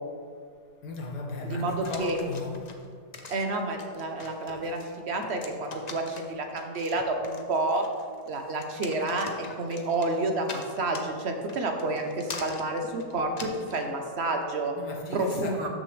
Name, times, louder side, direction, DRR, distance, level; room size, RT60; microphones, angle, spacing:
voice 1, 0.8-2.7 14.8-15.7, left 3 dB, 75° left, 1.5 m, -36 dB
voice 2, 1.4-2.2 3.3-4.8 5.1-7.8 8.3-14.7 15.1-15.7, right 2 dB, 50° right, 0.9 m, -29 dB
sound 1, 1.8-13.9, left 3 dB, 55° left, 0.4 m, -43 dB
13.0 x 6.4 x 3.3 m
omnidirectional pair, 1.8 m